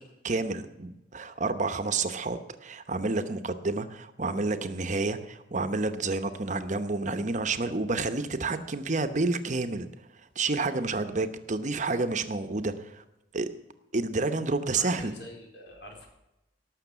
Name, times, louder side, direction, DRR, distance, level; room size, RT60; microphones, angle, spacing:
voice 1, 0.2-9.9 10.3-13.0 13.3-13.5 13.9-15.1, right 3 dB, 45° right, 9 dB, 0.9 m, -29 dB
voice 2, 14.7-16.1, left 1 dB, 85° left, 1 dB, 4.3 m, -45 dB
18.0 x 6.6 x 8.1 m, 0.92 s
head